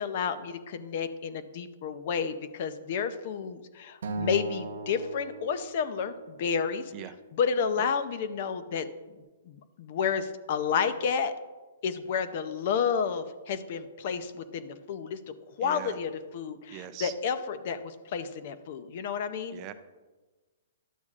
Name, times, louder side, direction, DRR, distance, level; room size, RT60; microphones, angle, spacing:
voice 1, 0.0-6.9 7.3-8.9 9.5-11.3 11.8-15.2 15.6-19.6, left 6 dB, 45° left, 11 dB, 0.6 m, -31 dB
Acoustic guitar, 4.0-6.4, right 3 dB, 80° right, 0.9 m, -37 dB
voice 2, 15.6-16.0 16.7-17.1 19.5-19.7, right 12 dB, 30° right, 10 dB, 0.5 m, -41 dB
12.0 x 8.1 x 2.4 m, 1.2 s
hypercardioid pair, 155°, 0 cm